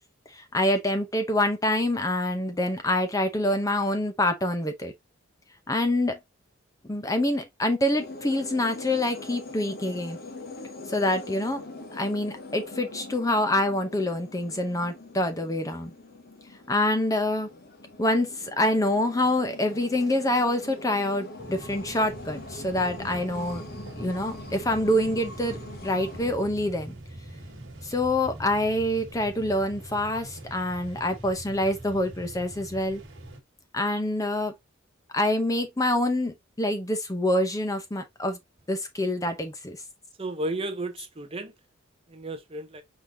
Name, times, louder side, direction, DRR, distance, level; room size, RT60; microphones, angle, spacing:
voice 1, 0.3-4.9 5.7-6.2 6.9-10.2 10.9-11.6 11.9-15.9 16.7-17.5 18.0-23.6 24.0-25.6 25.8-26.9 27.8-33.0 33.7-34.5 35.1-38.4 38.7-39.8, left 1 dB, 15° left, 0.7 m, -26 dB
sound 1, 8.0-26.3, left 2 dB, 50° left, 1.1 m, -43 dB
sound 2, 21.4-33.4, right 1 dB, 65° right, 1.5 m, -43 dB
voice 2, 40.2-41.5 42.1-42.8, right 2 dB, 30° right, 0.7 m, -33 dB
4.9 x 3.8 x 2.6 m
head